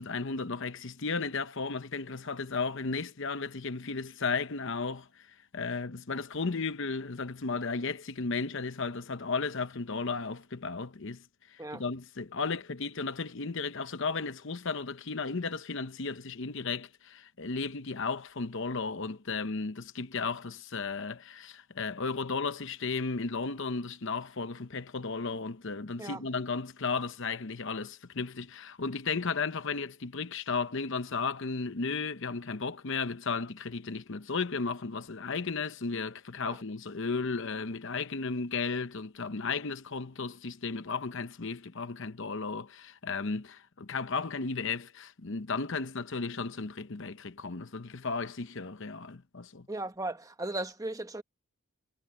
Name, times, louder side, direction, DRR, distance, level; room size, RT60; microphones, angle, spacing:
voice 1, 0.0-49.7, left 4 dB, 55° left, 0.9 m, -34 dB
voice 2, 49.7-51.2, right 2 dB, 15° right, 1.0 m, -36 dB
head